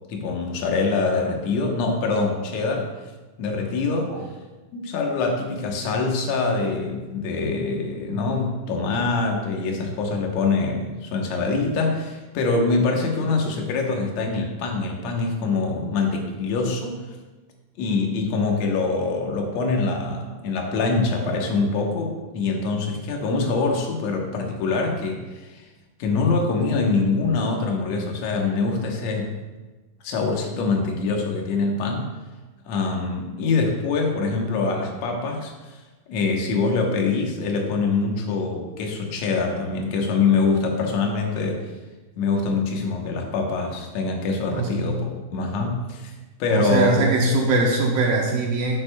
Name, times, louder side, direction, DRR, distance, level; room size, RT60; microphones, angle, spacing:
voice 1, 0.1-2.9 3.4-4.1 4.7-17.0 17.8-25.6 26.0-29.3 30.0-32.1 32.6-35.8 36.1-41.6 42.2-46.1 46.4-47.1, left 3 dB, 75° left, 1 dB, 1.5 m, -24 dB
voice 2, 44.5-44.8 46.5-48.8, right 2 dB, 70° right, -1 dB, 2.3 m, -22 dB
9.8 x 9.1 x 2.2 m, 1.2 s
omnidirectional pair, 4.6 m